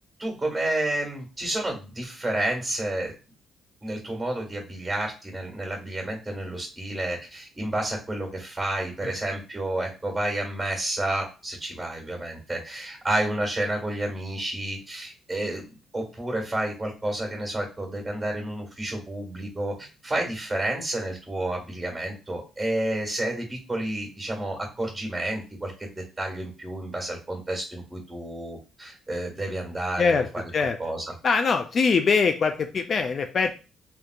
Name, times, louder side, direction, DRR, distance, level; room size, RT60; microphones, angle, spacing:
voice 1, 0.2-3.1 3.8-15.6 15.9-30.4 30.8-31.0, right 1 dB, 20° right, 0 dB, 1.7 m, -30 dB
voice 2, 31.2-33.5, left 5 dB, 50° left, 7 dB, 0.3 m, -23 dB
3.6 x 2.7 x 2.4 m, 0.32 s
cardioid pair, 90°, 0 cm